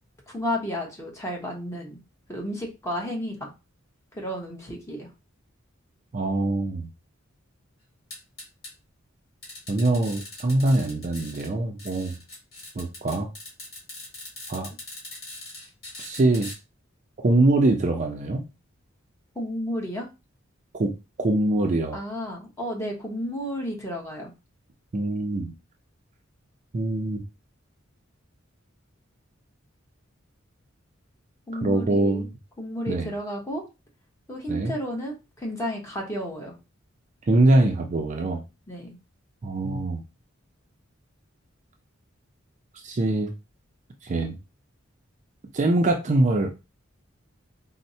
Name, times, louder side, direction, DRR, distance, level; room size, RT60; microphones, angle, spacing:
voice 1, 0.3-2.0 2.3-3.5 4.1-5.1 19.3-20.1 21.9-24.3 31.5-32.3 32.6-33.6 34.3-36.6 38.7-39.0, equal, 15° left, -1 dB, 0.9 m, -32 dB
voice 2, 6.1-6.9 9.7-12.2 12.8-13.3 14.5-14.7 16.0-16.5 17.2-18.4 20.8-20.9 21.2-22.0 24.9-25.5 26.7-27.2 31.6-32.3 32.9-33.1 34.5-34.7 37.3-38.4 39.4-40.0 42.8-43.3 44.0-44.4 45.5-46.7, right 2 dB, 35° right, 3 dB, 0.4 m, -23 dB
sound 1, 8.1-8.7 9.4-11.5 11.8-16.5, left 2 dB, 50° left, 1.6 m, -41 dB
4.2 x 2.1 x 2.7 m, 0.27 s
head